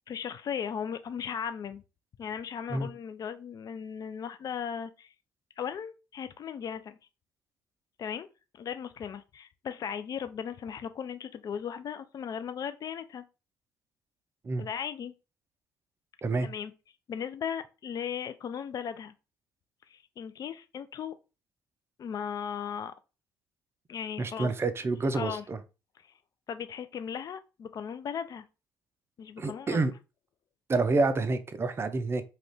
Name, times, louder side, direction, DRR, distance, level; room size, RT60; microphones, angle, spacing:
voice 1, 0.1-1.8 2.2-5.1 5.6-7.0 8.0-8.3 8.5-13.2 14.6-15.1 16.4-16.7 17.1-19.1 19.9-21.1 22.0-22.9 23.9-24.5 25.1-25.4 26.0-26.1 26.5-28.4 29.2-29.8, left 7 dB, 40° left, 0.3 m, -37 dB
voice 2, 24.2-25.6 29.4-29.9 30.7-32.2, right 3 dB, 25° right, 0.4 m, -28 dB
2.4 x 2.3 x 3.3 m
hypercardioid pair, 50°, 10 cm